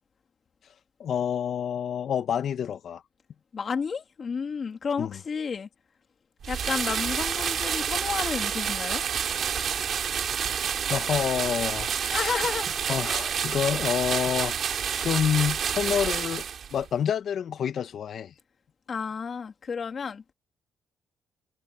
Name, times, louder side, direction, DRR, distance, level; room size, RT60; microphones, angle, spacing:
voice 1, 1.0-3.0 5.0-5.2 10.9-12.3 12.9-16.5 16.7-18.3, left 8 dB, 60° left, 1.4 m, -28 dB
voice 2, 3.5-5.7 6.5-9.0 12.1-12.7 18.9-20.2, left 6 dB, 45° left, 2.6 m, -31 dB
sound 1, 6.4-16.8, right 8 dB, 60° right, 2.8 m, -29 dB
cardioid pair, 90°, 0 cm